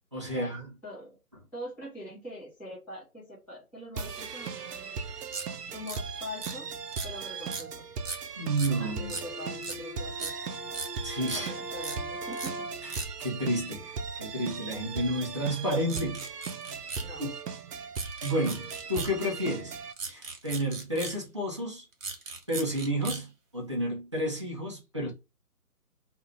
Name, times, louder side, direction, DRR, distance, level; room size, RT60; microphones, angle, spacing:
voice 1, 0.1-0.7 8.4-9.1 11.0-11.5 12.8-16.3 16.7-16.8 17.2-17.3 18.2-19.8 20.1-21.8 22.5-25.1, equal, 20° right, 0.5 m, -31 dB
voice 2, 1.5-5.0 5.7-6.7 7.0-7.8 8.8-10.4 11.2-12.7 17.0-17.3, left 1 dB, 5° left, 0.8 m, -43 dB
sound 1, 3.9-19.9, right 5 dB, 85° right, 0.6 m, -38 dB
sound 2, 5.3-5.5 5.9-6.0 6.4-6.5 6.9-7.1 7.5-7.6 8.0-8.2 8.6-8.7 9.1-9.3 9.6-9.8 10.2-10.3 10.7-10.9 11.2-11.4 11.8-12.0 12.3-12.5 12.9-13.1 15.9-17.1 17.9-19.1 19.9-21.2 21.9-23.2, right 4 dB, 55° right, 1.2 m, -38 dB
Bowed string instrument, 8.7-13.0, equal, 25° left, 1.3 m, -41 dB
2.7 x 2.4 x 3.1 m
figure-of-eight pair, 145°, 46 cm